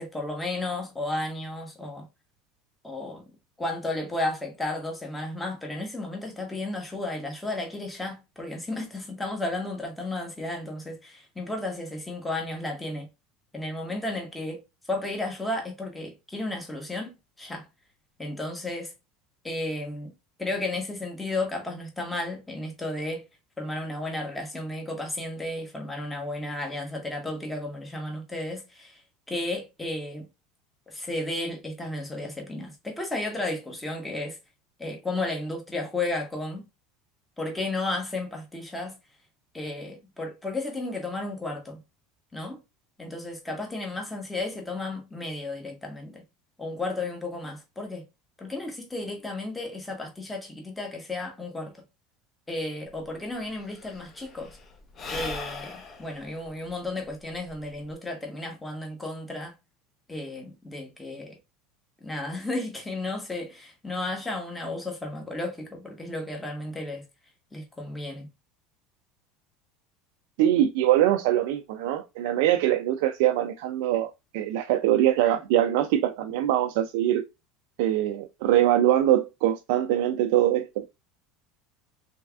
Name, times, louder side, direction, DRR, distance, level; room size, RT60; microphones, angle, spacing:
voice 1, 0.0-2.1 2.8-3.2 3.6-13.1 13.5-14.6 14.9-17.7 18.2-18.9 19.4-20.1 20.4-23.2 23.6-29.0 29.3-30.3 30.9-34.4 34.8-36.7 37.4-39.0 39.5-41.8 42.3-42.6 43.0-46.2 46.6-48.0 48.4-51.7 52.5-54.6 55.1-59.5 60.1-61.4 62.0-67.0 67.5-68.3, left 2 dB, 10° left, 1.1 m, -33 dB
Sigh / Breathing, 52.9-53.0 53.2-57.9, left 4 dB, 35° left, 0.7 m, -40 dB
voice 2, 70.4-77.2 77.8-80.8, right 12 dB, 75° right, 0.3 m, -23 dB
3.3 x 3.2 x 2.3 m
supercardioid pair, 120°, 0 cm